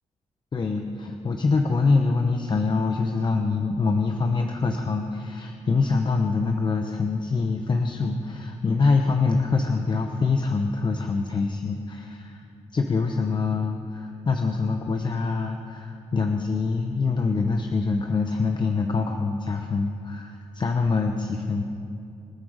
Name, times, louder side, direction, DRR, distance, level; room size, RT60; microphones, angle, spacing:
voice 1, 0.5-12.4 12.7-21.6, left 4 dB, 40° left, 4 dB, 0.9 m, -25 dB
25.5 x 9.3 x 5.0 m, 2.5 s
wide cardioid pair, 120°, 12 cm